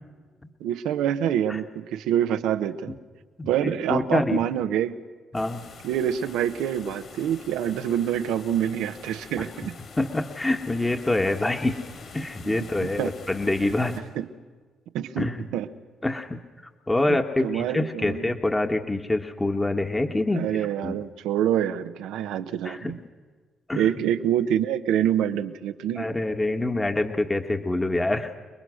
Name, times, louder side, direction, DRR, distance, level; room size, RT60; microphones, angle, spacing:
voice 1, 0.6-3.0 3.5-4.9 5.8-9.8 12.4-13.1 14.1-14.3 14.9-15.3 15.5-15.7 17.1-18.3 20.3-23.0 23.7-26.1, right 10 dB, 85° right, 9 dB, 1.0 m, -26 dB
voice 2, 3.4-4.4 5.3-5.6 9.4-9.5 10.0-11.8 12.1-14.0 15.2-15.5 16.0-16.4 16.9-20.6 20.8-21.0 22.6-23.0 23.7-23.9 26.0-28.4, left 2 dB, 20° left, 5 dB, 1.6 m, -26 dB
sound 1, 5.3-14.0, left 4 dB, 60° left, 5.7 m, -45 dB
28.0 x 20.5 x 6.4 m, 1.5 s
supercardioid pair, 65°, 0 cm